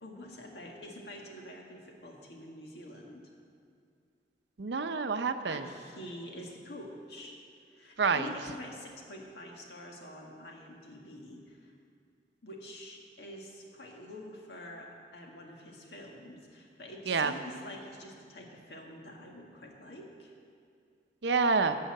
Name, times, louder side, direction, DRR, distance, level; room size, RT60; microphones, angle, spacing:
voice 1, 0.0-3.3 5.5-7.4 7.7-11.7 12.4-20.3, left 1 dB, 75° left, 0 dB, 1.8 m, -46 dB
voice 2, 4.6-5.7 8.0-8.3 17.1-17.3 21.2-21.8, right 4 dB, 90° right, 9 dB, 0.7 m, -28 dB
14.5 x 5.6 x 7.7 m, 2.3 s
head